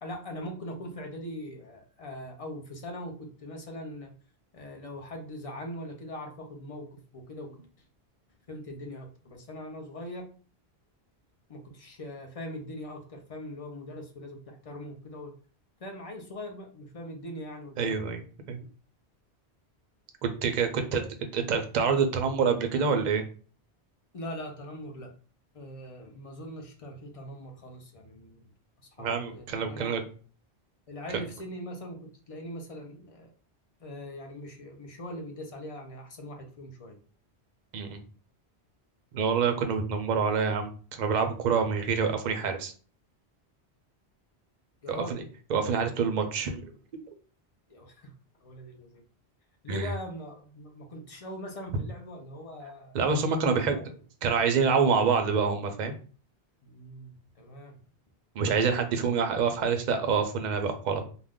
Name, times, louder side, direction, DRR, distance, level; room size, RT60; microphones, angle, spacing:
voice 1, 0.0-4.1 4.5-7.7 8.5-10.3 11.5-15.3 15.8-18.0 20.8-21.3 24.1-25.1 25.5-28.5 29.0-30.0 30.9-33.3 33.8-37.0 44.8-45.2 47.7-48.1 48.4-49.0 49.6-53.0 53.4-53.9 56.6-57.8, equal, 45° left, 3 dB, 0.5 m, -41 dB
voice 2, 17.8-18.2 18.5-18.6 20.2-21.0 21.3-23.2 29.0-30.0 37.7-38.0 39.1-42.7 44.9-45.2 45.5-46.7 49.7-49.9 52.9-53.8 54.2-55.9 58.4-61.0, right 5 dB, 55° right, 6 dB, 0.5 m, -26 dB
2.4 x 2.2 x 3.4 m, 0.40 s
omnidirectional pair, 1.1 m